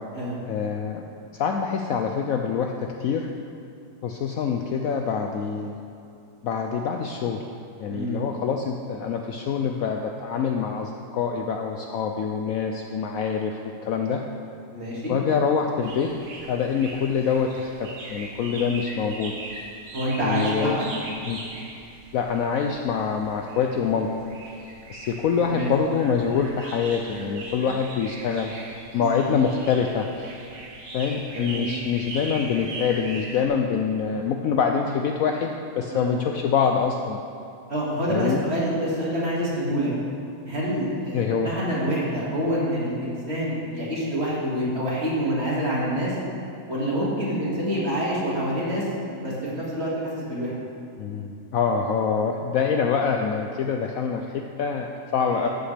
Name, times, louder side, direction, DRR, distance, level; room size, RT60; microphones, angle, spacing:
voice 1, 0.5-1.0 1.3-3.3 4.0-5.8 6.4-7.4 7.8-14.2 15.1-16.1 16.5-19.3 20.2-20.8 21.2-21.4 22.1-24.1 24.9-28.5 28.9-30.1 30.9-37.2 38.1-38.4 41.1-41.5 51.0-55.5, left 6 dB, 85° left, 3 dB, 0.7 m, -25 dB
voice 2, 7.9-8.2 14.7-15.1 18.5-18.7 19.9-20.8 25.4-25.7 28.9-29.3 31.3-31.7 35.9-36.2 37.7-39.9 40.5-46.1 46.7-48.8 49.2-50.6 55.3-55.5, equal, 35° right, -7 dB, 2.4 m, -27 dB
sound 1, 15.8-33.5, right 2 dB, 50° right, 1.4 m, -40 dB
13.0 x 7.8 x 3.4 m, 2.6 s
omnidirectional pair, 2.0 m